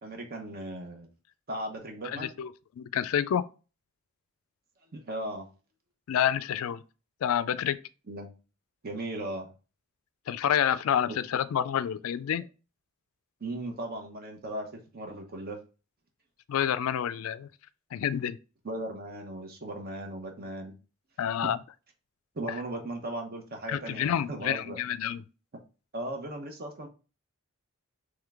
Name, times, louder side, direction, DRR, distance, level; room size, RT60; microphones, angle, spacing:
voice 1, 0.0-1.1 1.5-2.4 4.9-5.5 8.1-8.3 8.8-9.5 13.4-15.6 18.6-20.7 21.4-21.5 22.3-24.8 25.9-26.9, right 1 dB, 45° right, 0.9 m, -37 dB
voice 2, 2.0-2.5 2.8-3.4 6.1-6.8 7.2-7.8 10.3-12.5 16.5-17.5 17.9-18.4 21.2-21.6 23.7-25.2, left 9 dB, 70° left, 0.3 m, -28 dB
3.6 x 3.2 x 3.5 m
head